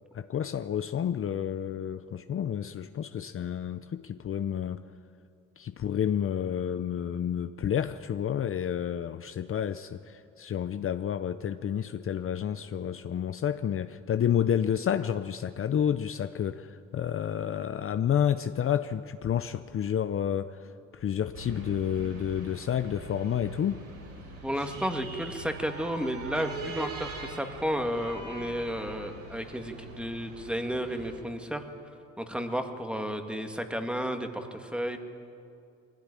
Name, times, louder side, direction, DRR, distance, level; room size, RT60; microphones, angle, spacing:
voice 1, 0.1-4.8 5.6-23.8, left 9 dB, 45° left, 11 dB, 0.7 m, -30 dB
sound 1, 21.3-31.2, right 2 dB, 55° right, 4.7 m, -42 dB
voice 2, 24.4-31.7 32.2-35.0, equal, 5° right, 5 dB, 2.0 m, -32 dB
21.5 x 16.0 x 9.9 m, 2.5 s
cardioid pair, 90°, 30 cm